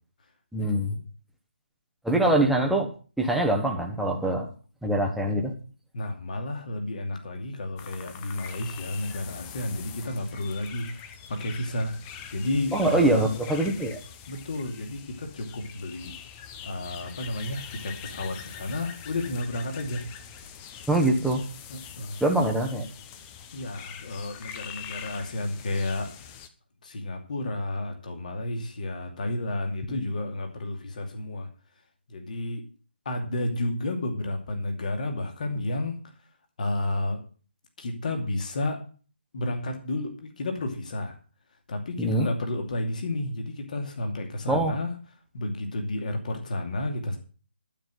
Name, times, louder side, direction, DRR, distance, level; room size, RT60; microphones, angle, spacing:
voice 1, 0.5-1.0 2.0-2.9 3.2-4.5 4.8-5.5 12.7-14.0 20.9-21.4 22.2-22.9 29.9-30.0 42.0-42.3 44.5-44.7, right 1 dB, ahead, 0 dB, 1.2 m, -24 dB
voice 2, 5.9-13.2 14.3-16.1 16.6-20.0 21.7-22.2 23.5-26.1 26.8-31.5 32.1-32.6 33.0-36.0 36.6-37.2 37.8-38.8 39.3-41.2 41.7-44.9 45.3-47.2, left 1 dB, 45° left, 4 dB, 2.6 m, -31 dB
sound 1, 7.8-26.5, left 8 dB, 15° left, 0.8 m, -44 dB
12.0 x 6.1 x 7.7 m, 0.38 s
figure-of-eight pair, 150°, 6 cm